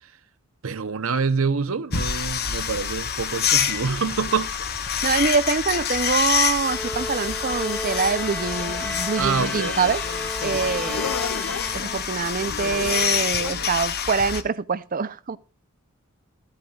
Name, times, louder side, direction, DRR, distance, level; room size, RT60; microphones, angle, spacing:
voice 1, 0.6-4.5 4.9-5.0 9.2-9.9, right 5 dB, 75° right, 0.8 m, -26 dB
sound 1, 1.9-14.4, left 8 dB, 50° left, 1.2 m, -27 dB
voice 2, 5.0-10.0 10.4-11.1 11.7-15.4, right 5 dB, 40° right, 0.6 m, -25 dB
sound 2, 6.6-12.3, left 1 dB, 5° left, 0.5 m, -34 dB
sound 3, 8.6-13.7, left 6 dB, 70° left, 0.5 m, -35 dB
14.5 x 14.5 x 2.4 m
head